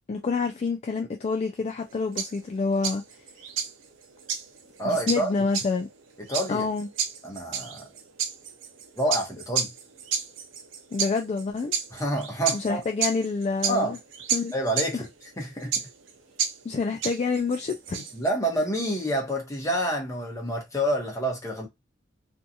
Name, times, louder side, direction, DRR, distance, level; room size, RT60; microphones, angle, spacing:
voice 1, 0.1-3.0 4.8-5.9 6.5-6.9 10.9-11.7 12.5-14.0 14.3-14.5 14.9-15.0 16.6-18.1, left 4 dB, 35° left, 0.3 m, -27 dB
sound 1, 1.8-18.3, right 7 dB, 90° right, 0.5 m, -32 dB
voice 2, 4.8-5.5 6.3-6.7 7.2-7.9 9.0-9.7 11.9-12.8 13.7-13.9 14.5-15.1 15.4-15.7 18.1-21.7, right 1 dB, 15° left, 0.9 m, -28 dB
2.6 x 2.3 x 2.6 m
head